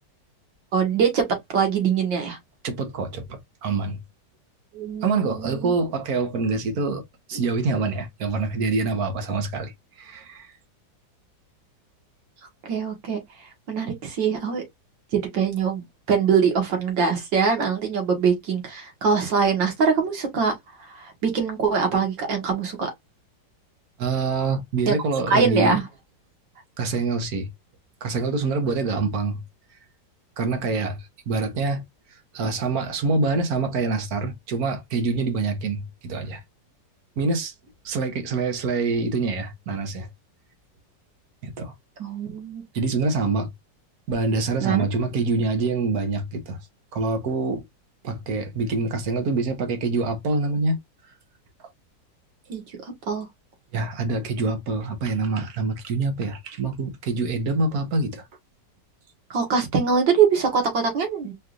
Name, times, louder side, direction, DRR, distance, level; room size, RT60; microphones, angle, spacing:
voice 1, 0.7-1.2 1.5-2.4 4.7-5.7 12.6-13.2 13.7-14.6 15.1-22.9 24.9-25.0 25.3-25.8 42.0-42.6 44.6-44.9 52.5-53.3 59.3-61.3, right 6 dB, 80° right, 2.2 m, -23 dB
voice 2, 2.6-4.0 5.0-7.0 7.3-10.5 24.0-25.8 26.8-27.5 28.0-29.4 30.4-31.8 32.3-36.4 37.2-37.5 37.8-40.1 41.4-41.7 42.7-43.5 44.1-46.6 46.9-47.6 48.0-50.8 53.7-58.2, right 3 dB, 55° right, 1.5 m, -25 dB
4.6 x 3.3 x 2.5 m
omnidirectional pair, 2.0 m